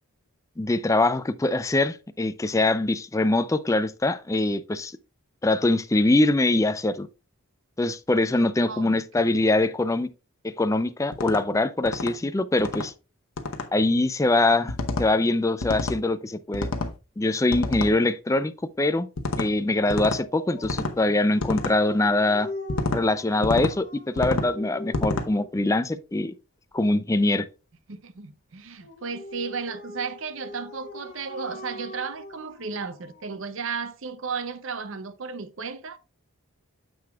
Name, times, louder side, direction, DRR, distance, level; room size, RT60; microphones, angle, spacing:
voice 1, 0.6-5.0 5.4-7.1 7.8-10.1 10.6-12.9 13.7-16.7 17.2-19.1 19.4-22.5 22.9-26.3 26.7-27.5, left 2 dB, 15° left, 0.4 m, -23 dB
voice 2, 8.7-9.3 27.9-36.0, right 5 dB, 60° right, 0.6 m, -34 dB
sound 1, 11.1-11.4 11.9-12.1 12.6-12.9 13.4-13.7 14.7-15.1 15.6-16.0 16.5-16.9 17.5-17.9 19.2-19.5 19.9-20.2 20.6-21.0 21.4-21.7 22.7-23.0 23.4-23.7 24.2-24.5 24.9-25.3, left 2 dB, 70° left, 1.0 m, -28 dB
Dog, 19.8-25.6 28.8-33.4, left 1 dB, 40° left, 3.2 m, -42 dB
9.5 x 6.6 x 2.3 m
head